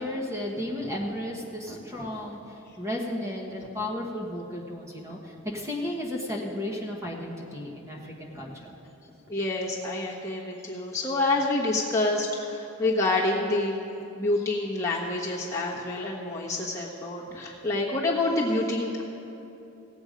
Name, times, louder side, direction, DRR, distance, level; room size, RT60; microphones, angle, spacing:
voice 1, 0.0-8.7, left 1 dB, 15° right, -2 dB, 1.2 m, -34 dB
voice 2, 9.3-13.8 14.1-19.0, left 2 dB, 15° left, -5 dB, 1.1 m, -27 dB
17.5 x 8.0 x 5.1 m, 2.9 s
head